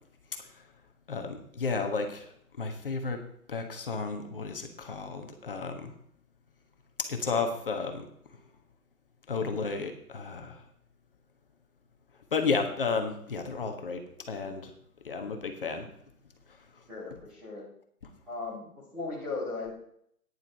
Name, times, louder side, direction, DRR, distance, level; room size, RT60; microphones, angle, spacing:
voice 1, 1.1-2.3 2.6-3.2 3.5-5.9 7.0-8.1 9.3-10.6 12.3-14.0 14.3-14.7 15.0-15.9, left 4 dB, 35° left, 5 dB, 1.4 m, -32 dB
voice 2, 16.9-17.7 18.3-19.7, left 3 dB, 5° right, -9 dB, 1.2 m, -37 dB
10.0 x 9.9 x 4.2 m, 0.67 s
hypercardioid pair, 170°, 44 cm